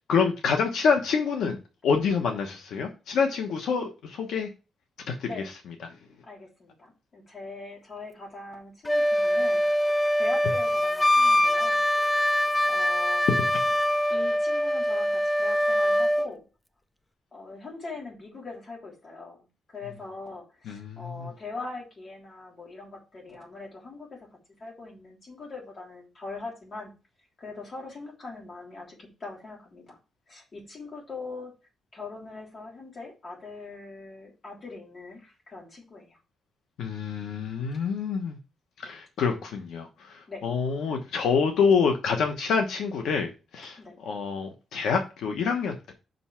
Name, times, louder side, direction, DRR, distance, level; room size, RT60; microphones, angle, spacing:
voice 1, 0.1-1.6 1.8-4.5 5.1-5.3 20.7-21.1 36.8-38.4 38.8-43.8 44.1-45.9, left 5 dB, 90° left, 4 dB, 1.1 m, -26 dB
voice 2, 6.2-11.8 12.6-13.3 14.1-16.4 17.3-24.3 24.6-26.9 27.4-30.0 30.3-31.5 31.9-36.2 38.8-39.0 40.3-40.5 40.8-40.9 43.6-44.0, left 3 dB, 40° left, -2 dB, 3.5 m, -42 dB
Wind instrument woodwind instrument, 8.8-16.3, left 1 dB, 10° left, 0.3 m, -23 dB
5.6 x 5.4 x 5.7 m, 0.31 s
cardioid pair, 130°, 0 cm